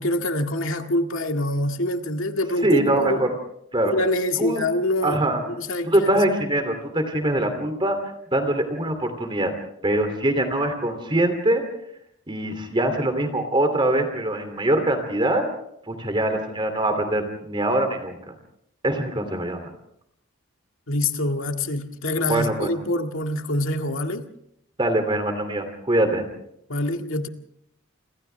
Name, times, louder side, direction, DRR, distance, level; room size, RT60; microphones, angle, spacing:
voice 1, 0.0-3.2 3.9-5.2 5.6-6.1 20.9-24.3 26.7-27.3, left 1 dB, 75° left, 2.0 m, -25 dB
voice 2, 2.6-3.3 3.7-3.9 4.4-4.7 5.0-5.4 5.9-8.0 8.3-9.5 9.8-11.6 12.3-15.5 15.9-18.3 18.8-19.6 22.3-22.7 24.8-26.3, right 1 dB, 25° right, 2.8 m, -23 dB
29.0 x 26.5 x 3.4 m
head